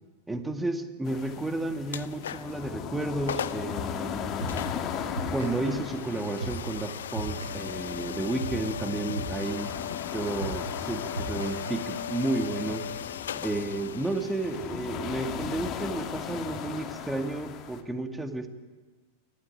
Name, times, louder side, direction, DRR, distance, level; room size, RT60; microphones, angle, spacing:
voice 1, 0.3-4.5 5.3-9.8 10.1-12.9 13.4-18.5, right 2 dB, 10° right, 8 dB, 2.1 m, -32 dB
sound 1, 1.0-17.8, left 8 dB, 35° left, 2.2 m, -38 dB
sound 2, 1.9-2.6 3.0-3.1 3.3-3.7 4.5-17.2, left 9 dB, 65° left, 0.7 m, -38 dB
sound 3, 4.4-12.2, right 3 dB, 80° right, 4.8 m, -38 dB
24.0 x 16.0 x 9.4 m, 1.4 s
figure-of-eight pair, 90°, 0 cm